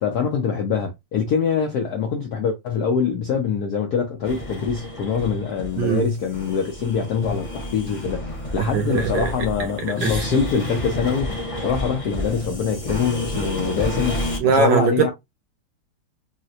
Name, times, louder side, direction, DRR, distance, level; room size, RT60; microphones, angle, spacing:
voice 1, 0.0-15.1, left 6 dB, 80° left, 0.9 m, -24 dB
sound 1, 4.2-14.4, left 1 dB, 35° left, 0.7 m, -30 dB
voice 2, 5.8-6.1 8.6-9.3 9.6-9.7 10.0-10.2 14.4-15.1, right 6 dB, 75° right, 1.0 m, -21 dB
3.7 x 2.1 x 2.7 m
omnidirectional pair, 2.3 m